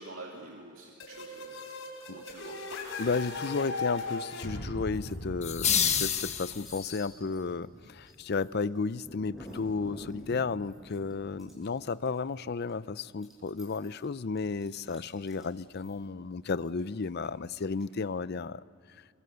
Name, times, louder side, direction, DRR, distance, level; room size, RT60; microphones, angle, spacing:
voice 1, 0.0-1.7 2.1-2.6, right 2 dB, 85° right, -1 dB, 2.5 m, -47 dB
sound 1, 1.0-6.7, left 3 dB, 75° left, 4.3 m, -38 dB
voice 2, 3.0-18.6, left 4 dB, 55° left, 16 dB, 0.6 m, -33 dB
sound 2, 4.0-4.4 4.8-18.0, left 1 dB, ahead, 7.9 m, -51 dB
sound 3, 5.4-7.0, left 8 dB, 35° left, 1.2 m, -28 dB
27.0 x 24.0 x 6.8 m, 2.5 s
head